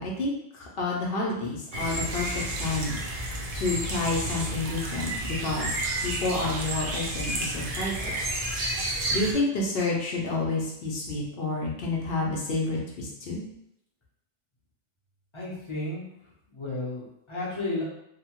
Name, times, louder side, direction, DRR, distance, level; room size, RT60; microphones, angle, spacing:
voice 1, 0.0-3.0 3.5-7.9 9.1-13.4, left 2 dB, 60° left, -3 dB, 0.8 m, -29 dB
sound 1, 1.7-9.3, right 1 dB, 55° right, 0.4 m, -31 dB
voice 2, 15.3-16.0 16.5-17.8, left 2 dB, 30° left, -6 dB, 0.7 m, -33 dB
2.8 x 2.1 x 2.9 m, 0.76 s
omnidirectional pair, 1.2 m